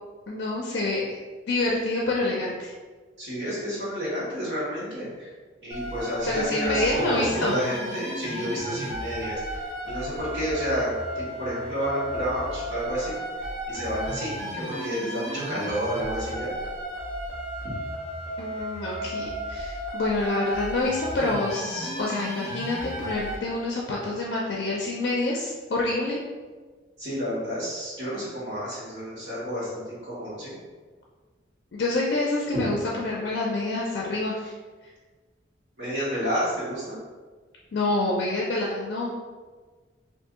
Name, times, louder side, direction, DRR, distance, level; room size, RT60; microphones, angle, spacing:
voice 1, 0.3-1.2 1.5-2.7 6.2-7.6 18.4-26.2 31.7-34.5 37.7-39.1, left 2 dB, 60° left, -3 dB, 0.4 m, -27 dB
voice 2, 3.2-5.3 5.6-9.6 9.8-13.2 13.7-16.5 17.6-17.7 27.0-30.5 32.5-32.6 35.8-37.0, equal, 70° right, -11 dB, 1.3 m, -30 dB
sound 1, 5.7-23.4, right 1 dB, 35° right, 0.9 m, -34 dB
2.6 x 2.6 x 3.6 m, 1.4 s
head